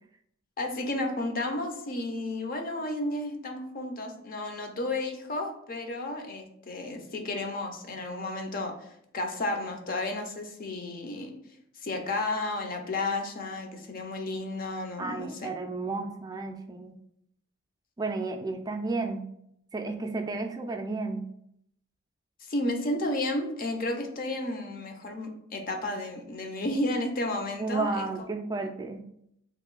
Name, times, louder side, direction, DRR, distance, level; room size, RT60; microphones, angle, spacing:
voice 1, 0.6-8.9 9.1-11.3 11.8-15.5 22.4-28.1, left 2 dB, 45° left, 4 dB, 0.5 m, -32 dB
voice 2, 15.0-16.9 18.0-19.3 19.7-21.2 27.6-29.0, right 3 dB, 20° right, 4 dB, 0.3 m, -32 dB
3.0 x 2.7 x 3.8 m, 0.73 s
head